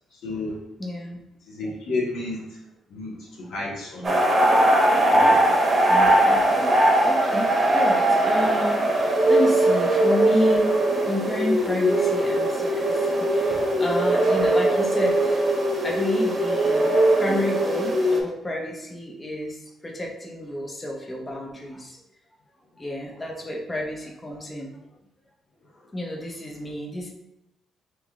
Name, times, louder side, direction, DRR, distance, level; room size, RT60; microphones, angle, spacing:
voice 1, 0.1-0.6 1.5-2.6 2.9-4.1 5.1-5.6 13.5-13.6, left 2 dB, 80° left, -4 dB, 1.1 m, -32 dB
voice 2, 0.8-1.2 5.9-6.5 7.0-15.4 15.8-16.9 17.2-22.0 22.8-24.8 25.9-27.1, left 1 dB, 20° left, -1 dB, 0.7 m, -30 dB
sound 1, 4.0-18.2, right 1 dB, 35° right, 0.9 m, -20 dB
3.4 x 3.0 x 3.6 m, 0.88 s
cardioid pair, 90°, 0 cm